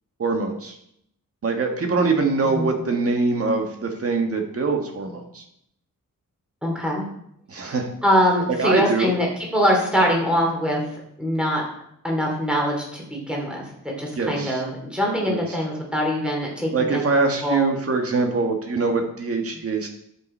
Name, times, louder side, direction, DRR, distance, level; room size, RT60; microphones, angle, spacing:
voice 1, 0.2-0.8 1.4-5.4 7.5-7.9 8.6-9.1 14.2-14.6 15.2-15.6 16.7-19.9, right 3 dB, 45° right, 3 dB, 1.6 m, -23 dB
voice 2, 6.6-7.0 7.6-7.7 8.0-9.3 9.5-10.8 11.2-11.6 12.0-17.1 17.4-17.7, equal, 5° right, -1 dB, 2.8 m, -23 dB
10.5 x 7.8 x 4.4 m, 0.72 s
wide cardioid pair, 175°, 33 cm